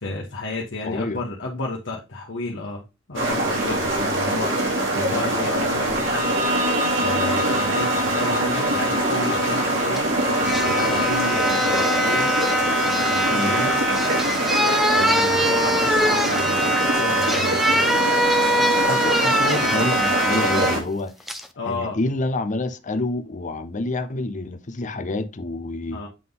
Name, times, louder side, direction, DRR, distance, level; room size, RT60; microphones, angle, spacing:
voice 1, 0.0-2.8 3.1-4.6 4.9-6.3 7.0-12.4 13.0-13.7 14.9-17.9 21.6-22.0 25.9-26.1, left 2 dB, 70° left, 1.2 m, -32 dB
voice 2, 0.8-1.2 3.7-4.1 10.5-10.6 13.3-13.6 18.8-21.1 21.7-26.0, left 2 dB, 40° left, 0.7 m, -28 dB
sound 1, 3.1-20.8, right 1 dB, 85° right, 2.8 m, -23 dB
Bowed string instrument, 5.9-11.4, equal, 40° right, 1.8 m, -27 dB
sound 2, 10.0-10.1 10.4-20.8 21.3-21.5, equal, ahead, 0.5 m, -23 dB
7.5 x 3.8 x 3.8 m
head